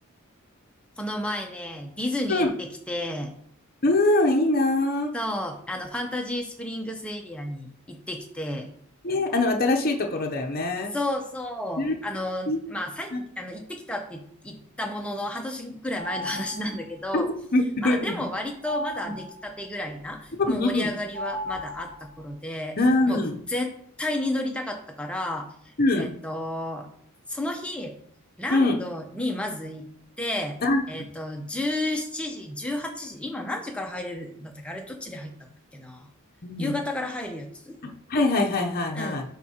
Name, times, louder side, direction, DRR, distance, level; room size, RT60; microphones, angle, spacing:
voice 1, 1.0-3.3 5.1-8.7 10.9-17.3 17.8-22.8 23.1-23.2 23.5-23.7 24.0-25.5 26.0-26.9 27.3-27.9 28.4-29.9 30.2-30.6 30.9-36.1 36.6-37.8 38.9-39.2, left 1 dB, 5° left, 3 dB, 0.7 m, -32 dB
voice 2, 3.8-5.1 9.0-10.9 11.8-12.0 12.5-12.6 13.1-13.2 17.1-17.2 17.5-18.2 19.0-19.1 20.5-20.9 22.8-23.3 25.8-26.1 28.5-28.8 30.6-30.8 36.4-36.8 37.8-39.2, left 2 dB, 40° left, 2 dB, 0.7 m, -23 dB
sound 1, 16.0-16.9 18.6-19.6 21.1-22.3, left 1 dB, 75° right, 0.9 m, -35 dB
9.1 x 3.6 x 2.9 m, 0.66 s
head